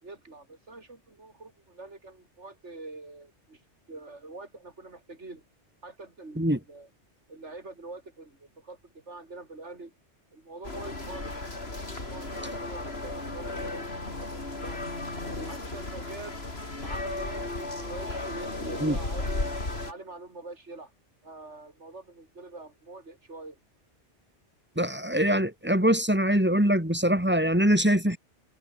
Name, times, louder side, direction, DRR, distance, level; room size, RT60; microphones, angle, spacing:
voice 1, 0.0-3.6 3.9-5.4 5.8-6.9 7.3-9.9 10.3-11.4 11.9-13.8 14.2-14.8 15.5-16.3 16.8-19.4 19.8-20.9 21.2-23.6, right 2 dB, 75° right, 4.3 m, -45 dB
sound 1, 10.6-19.9, left 2 dB, 60° left, 4.5 m, -35 dB
voice 2, 24.7-28.2, equal, 10° right, 3.5 m, -23 dB
omnidirectional pair, 1.2 m